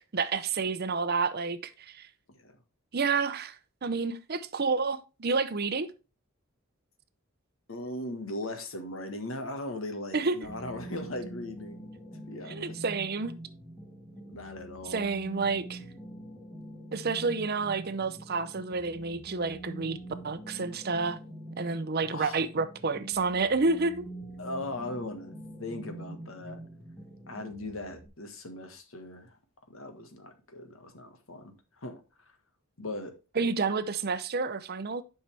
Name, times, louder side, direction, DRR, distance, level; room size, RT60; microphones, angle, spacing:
voice 1, 0.0-2.1 2.9-3.5 3.8-5.9 10.1-10.4 12.5-13.3 14.9-15.8 16.9-20.0 20.2-21.2 21.6-24.0 33.4-35.0, right 4 dB, 50° right, 0.6 m, -29 dB
voice 2, 7.7-12.8 14.3-15.1 22.1-22.4 24.4-26.6 27.3-29.4 29.7-31.5 31.8-32.0 32.8-33.1, left 1 dB, 75° left, 1.6 m, -39 dB
sound 1, 10.4-28.1, right 1 dB, 5° left, 1.3 m, -45 dB
10.5 x 5.5 x 3.4 m
head